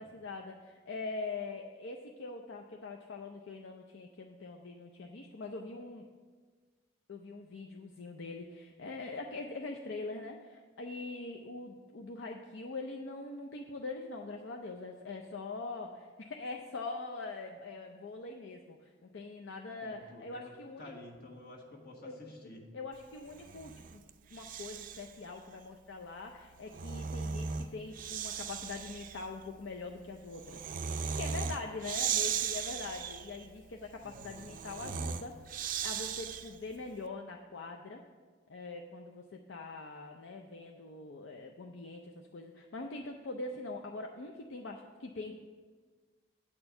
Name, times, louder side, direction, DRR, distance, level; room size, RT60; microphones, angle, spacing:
voice 1, 0.0-6.1 7.1-20.9 22.0-22.1 22.7-24.0 24.3-35.4 35.8-38.0 38.5-45.4, left 3 dB, 70° left, 2 dB, 0.5 m, -43 dB
voice 2, 19.8-20.5 20.8-22.7 34.0-34.5, left 2 dB, 55° left, 0 dB, 1.4 m, -50 dB
Breathing, 23.2-25.2 26.4-36.7, right 7 dB, 45° right, 0.4 m, -38 dB
8.6 x 4.4 x 6.8 m, 1.5 s
head